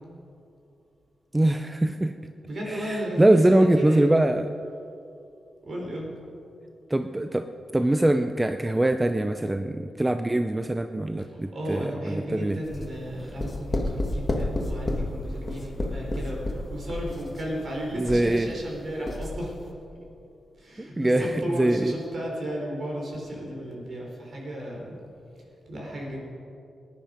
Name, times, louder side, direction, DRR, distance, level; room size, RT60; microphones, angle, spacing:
voice 1, 1.3-2.1 2.7-4.5 6.9-7.5 7.7-12.6 18.0-18.5 20.8-21.3 21.6-22.0, right 1 dB, 15° right, 8 dB, 0.5 m, -23 dB
voice 2, 2.4-4.2 5.6-6.1 11.2-19.7 20.5-25.0 25.7-26.2, equal, 55° right, -2 dB, 4.2 m, -34 dB
sound 1, 12.6-18.8 19.1-19.5, left 1 dB, 25° left, 1.7 m, -30 dB
18.5 x 10.5 x 5.2 m, 2.6 s
wide cardioid pair, 100°, 0 cm